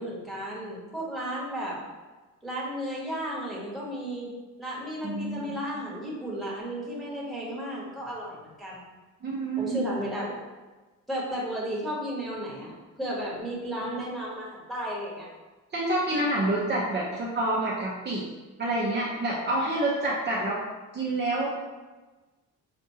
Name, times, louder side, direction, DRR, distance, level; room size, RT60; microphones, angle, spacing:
voice 1, 0.0-1.8 2.4-4.3 4.6-8.8 9.6-10.4 11.1-15.3, equal, ahead, -7 dB, 1.3 m, -34 dB
voice 2, 5.0-5.5 9.2-9.9 15.7-18.2 18.6-20.6 20.9-21.5, right 2 dB, 35° right, -5 dB, 0.7 m, -27 dB
5.9 x 2.5 x 2.7 m, 1.2 s
cardioid pair, 125°, 32 cm